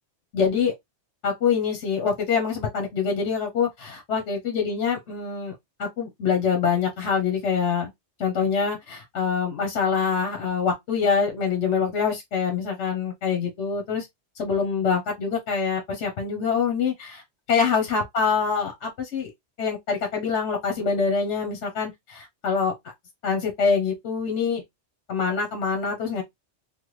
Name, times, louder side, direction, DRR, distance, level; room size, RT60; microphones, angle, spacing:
voice 1, 0.3-0.7 1.2-5.5 5.8-7.9 8.2-14.1 14.4-17.2 17.5-19.3 19.6-22.7 23.2-24.6 25.1-26.2, left 6 dB, 80° left, 1.1 m, -25 dB
3.3 x 2.2 x 3.0 m
omnidirectional pair, 1.2 m